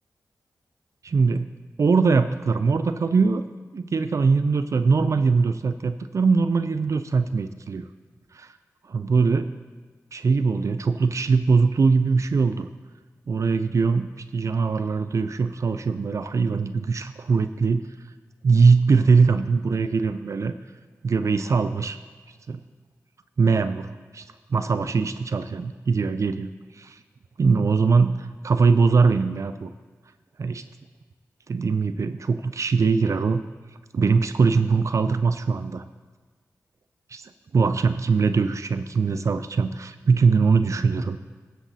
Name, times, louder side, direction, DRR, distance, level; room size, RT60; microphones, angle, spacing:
voice 1, 1.0-1.5 1.8-3.4 3.7-7.9 8.3-8.5 8.9-9.5 10.1-12.7 13.3-14.1 14.3-17.8 18.4-20.6 21.0-22.0 22.5-22.6 23.4-24.2 24.5-27.0 27.4-29.7 30.4-30.6 31.5-33.5 33.9-35.8 37.5-41.2, right 4 dB, 55° right, 11 dB, 0.4 m, -21 dB
14.0 x 7.9 x 2.7 m, 1.4 s
cardioid pair, 50°, 6 cm